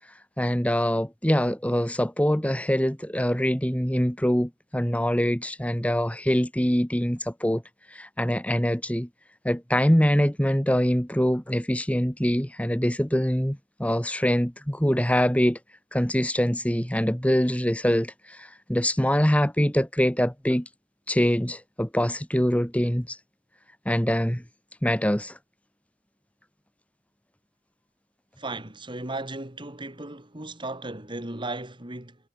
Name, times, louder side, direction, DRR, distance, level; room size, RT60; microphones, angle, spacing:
voice 1, 0.4-7.6 7.9-9.1 9.4-15.6 15.9-20.6 21.1-23.2 23.9-24.4 24.8-25.4, equal, 5° left, 2.0 m, -24 dB
voice 2, 28.4-32.2, right 2 dB, 25° right, 3.1 m, -36 dB
head